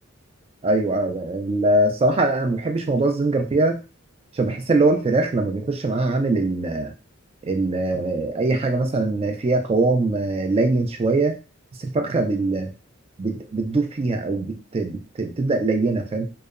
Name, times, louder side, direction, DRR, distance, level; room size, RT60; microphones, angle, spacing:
voice 1, 0.6-3.8 4.3-6.9 7.4-11.4 11.8-12.7 13.2-16.3, right 2 dB, 30° right, 4 dB, 0.4 m, -22 dB
2.7 x 2.1 x 2.4 m, 0.31 s
head